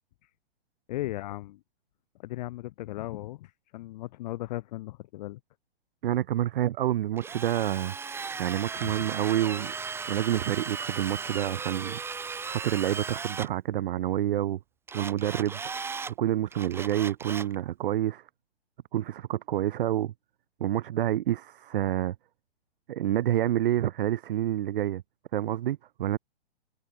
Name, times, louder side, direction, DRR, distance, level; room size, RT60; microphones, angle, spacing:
voice 1, 0.9-1.6 2.2-5.4 8.8-8.9, left 17 dB, 40° left, 0.9 m, -37 dB
voice 2, 6.0-8.0 8.4-9.7 10.1-14.6 14.9-15.6 16.2-18.2 18.9-20.1 20.6-22.2 22.9-25.0 25.3-26.2, right 12 dB, 55° right, 2.1 m, -28 dB
Drill, 7.2-13.5 14.9-16.1 16.5-17.5, right 5 dB, 10° right, 1.1 m, -36 dB
hypercardioid pair, 140°, 31 cm